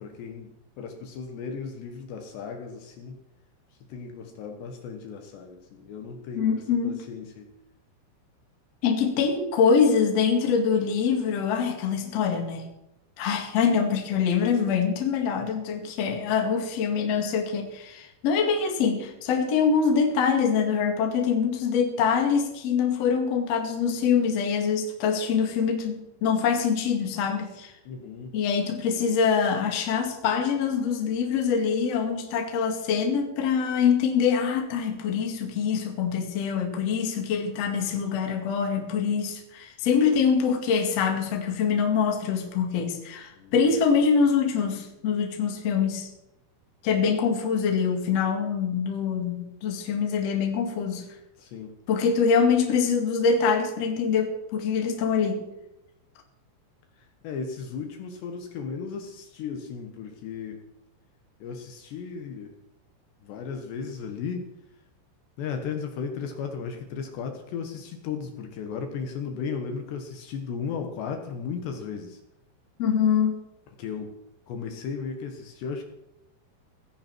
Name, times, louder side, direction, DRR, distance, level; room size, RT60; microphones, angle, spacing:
voice 1, 0.0-3.2 3.9-7.5 27.9-28.4 43.3-43.8 51.4-51.8 57.0-60.6 61.4-62.6 63.2-64.5 65.4-72.2 73.8-74.2 74.5-75.8, left 6 dB, 70° left, 5 dB, 3.2 m, -35 dB
voice 2, 6.4-7.0 8.8-12.7 13.2-27.7 28.3-46.1 46.8-51.1 51.9-55.5 72.8-73.4, left 6 dB, 45° left, 3 dB, 2.3 m, -24 dB
17.0 x 16.0 x 4.6 m, 0.86 s
omnidirectional pair, 5.7 m